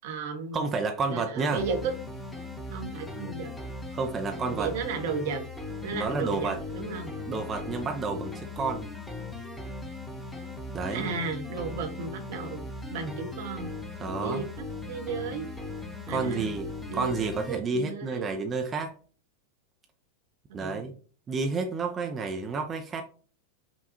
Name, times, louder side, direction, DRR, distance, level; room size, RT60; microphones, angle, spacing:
voice 1, 0.0-0.6 1.1-1.9 2.7-3.5 4.3-5.4 5.8-7.1 10.9-12.6 12.9-13.7 14.2-14.4 14.9-15.5 16.1-16.5 16.9-18.3 20.5-20.8, right 4 dB, 55° right, 5 dB, 0.8 m, -34 dB
voice 2, 0.5-1.6 3.9-4.7 5.9-6.6 7.3-8.9 10.7-11.1 14.0-14.5 16.1-18.9 20.5-20.9 21.3-23.0, right 4 dB, 20° right, 4 dB, 0.5 m, -30 dB
sound 1, 1.6-17.6, left 2 dB, 10° left, 0.8 m, -39 dB
5.3 x 2.3 x 2.8 m, 0.41 s
figure-of-eight pair, 90°, 0 cm